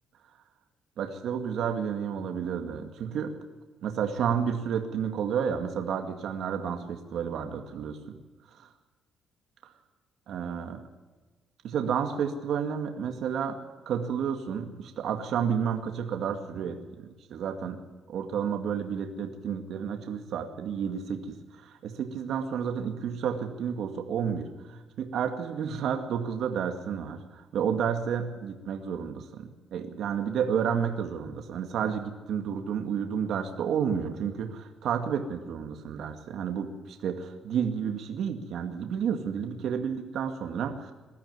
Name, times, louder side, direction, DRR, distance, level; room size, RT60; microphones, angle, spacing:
voice 1, 1.0-3.3 3.8-8.2 8.5-8.7 9.6-9.7 10.3-10.8 11.6-13.6 13.9-17.8 18.1-40.9, right 7 dB, 70° right, 5 dB, 2.1 m, -31 dB
21.0 x 13.5 x 9.4 m, 1.3 s
cardioid pair, 125°, 0 cm